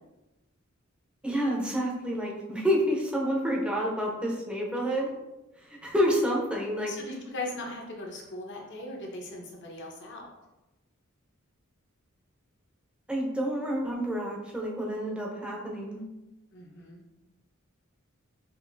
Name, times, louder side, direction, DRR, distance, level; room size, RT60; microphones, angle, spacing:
voice 1, 1.2-5.1 5.8-6.9 13.1-16.0, equal, 5° right, -2 dB, 0.7 m, -28 dB
voice 2, 6.9-10.3 16.5-17.0, left 2 dB, 55° left, 0 dB, 0.9 m, -39 dB
5.3 x 2.6 x 2.6 m, 1.0 s
head